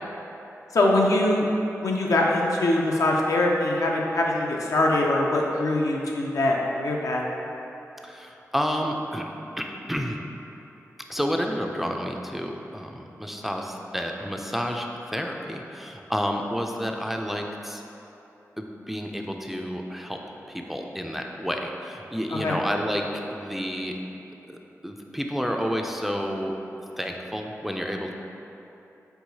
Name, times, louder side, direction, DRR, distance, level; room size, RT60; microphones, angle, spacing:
voice 1, 0.7-1.5 1.8-7.2 22.3-22.6, left 2 dB, 75° left, -2 dB, 0.5 m, -23 dB
voice 2, 8.0-9.2 9.6-10.2 11.1-17.8 18.6-20.2 20.5-23.0 23.3-24.0 24.5-24.6 24.8-26.5 27.0-28.1, equal, 5° right, 2 dB, 0.3 m, -30 dB
4.6 x 3.9 x 2.7 m, 3.0 s
cardioid pair, 50°, 6 cm